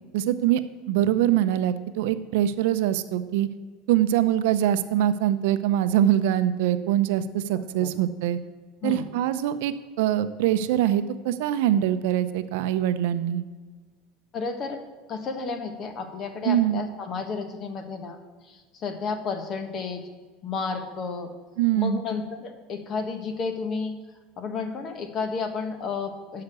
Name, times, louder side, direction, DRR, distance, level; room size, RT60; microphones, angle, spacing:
voice 1, 0.1-0.6 0.9-3.5 3.9-8.4 8.8-13.4 16.4-16.8 21.6-22.0, right 11 dB, 80° right, 12 dB, 0.6 m, -23 dB
voice 2, 14.3-14.8 15.1-18.2 18.4-20.0 20.4-21.3 21.7-24.0 24.4-26.4, left 4 dB, 40° left, 7 dB, 1.3 m, -32 dB
9.6 x 5.8 x 6.8 m, 1.4 s
supercardioid pair, 115°, 0 cm